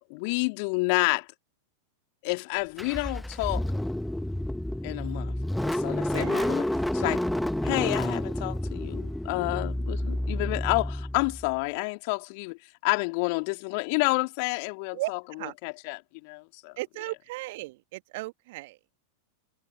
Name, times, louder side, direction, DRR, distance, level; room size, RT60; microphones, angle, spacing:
voice 1, 0.1-1.3 2.2-3.6 4.8-5.3 5.6-6.7 6.9-7.2 7.6-12.6 12.8-16.7, left 32 dB, 45° left, 2.8 m, -29 dB
Car / Engine starting, 2.8-11.5, left 1 dB, 5° left, 1.8 m, -30 dB
voice 2, 6.1-6.6 14.9-15.1 15.4-15.5 16.8-18.8, right 20 dB, 50° right, 2.5 m, -36 dB
figure-of-eight pair, 90°, 0 cm